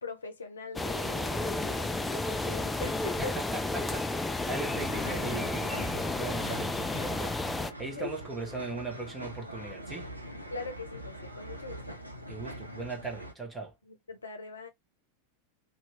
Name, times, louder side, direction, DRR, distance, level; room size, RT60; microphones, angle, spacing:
voice 1, 0.0-3.4 7.8-8.2 10.5-12.0 13.8-14.7, left 3 dB, 70° left, 0.7 m, -41 dB
sound 1, 0.8-7.7, left 2 dB, 10° left, 0.3 m, -32 dB
voice 2, 3.2-10.1 12.3-13.7, right 3 dB, 10° right, 1.0 m, -39 dB
sound 2, 4.7-13.3, right 1 dB, 85° right, 0.5 m, -43 dB
2.8 x 2.3 x 2.5 m
figure-of-eight pair, 90°, 0 cm